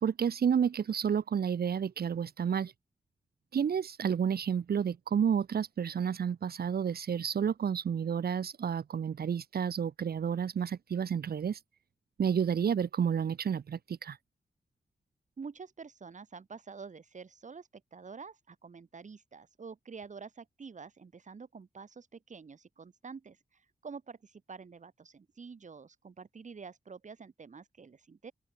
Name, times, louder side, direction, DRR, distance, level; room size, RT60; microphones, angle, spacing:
voice 1, 0.0-2.7 3.5-11.6 12.2-14.2, right 7 dB, 85° right, 1.5 m, -30 dB
voice 2, 15.4-28.3, right 5 dB, 50° right, 7.2 m, -48 dB
open air
wide cardioid pair, 155°, 16 cm